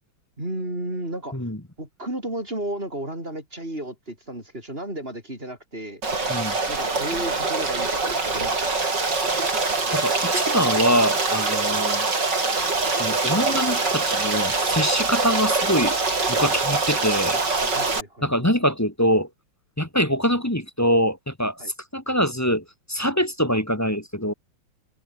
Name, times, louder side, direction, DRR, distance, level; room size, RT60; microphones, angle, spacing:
voice 1, 0.4-1.4 1.8-6.0 6.7-8.8 17.7-18.5 21.6-21.7, right 1 dB, 25° right, 8.1 m, -33 dB
Stream, 6.0-18.0, right 3 dB, 50° right, 5.1 m, -24 dB
voice 2, 9.9-12.1 13.0-16.0 16.3-17.4 18.2-19.3 19.8-21.6 21.9-24.3, equal, 10° left, 1.6 m, -24 dB
open air
omnidirectional pair, 2.4 m